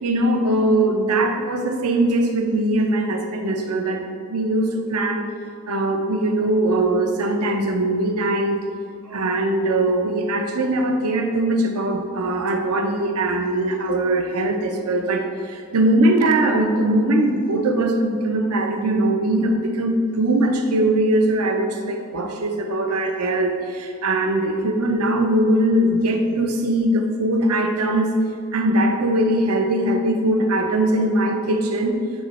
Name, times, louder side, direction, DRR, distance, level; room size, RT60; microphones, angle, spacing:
voice 1, 0.0-5.3 5.7-8.6 9.1-28.2 28.5-32.0, right 1 dB, 90° right, 4 dB, 0.7 m, -21 dB
8.9 x 3.0 x 4.3 m, 2.3 s
head